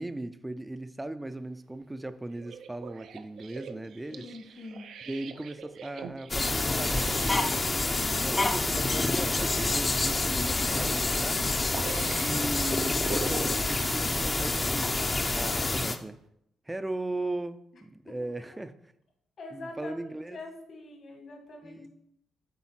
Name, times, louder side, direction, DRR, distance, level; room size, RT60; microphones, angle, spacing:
voice 1, 0.0-4.2 5.1-11.4 12.2-14.9 15.3-16.2 16.7-18.9 19.5-20.4 21.6-21.9, right 2 dB, 15° right, 11 dB, 0.5 m, -37 dB
sound 1, 2.3-7.6 8.7-8.9 9.3-9.4 10.1-11.1 11.7-14.4 15.0-15.1, right 7 dB, 70° right, 0.6 m, -43 dB
voice 2, 4.1-4.9 18.1-18.6 19.4-21.9, left 2 dB, 55° left, 3 dB, 2.1 m, -44 dB
sound 2, 6.3-16.0, left 2 dB, 25° left, 0.8 m, -27 dB
8.5 x 3.8 x 5.8 m, 0.74 s
cardioid pair, 90°, 0 cm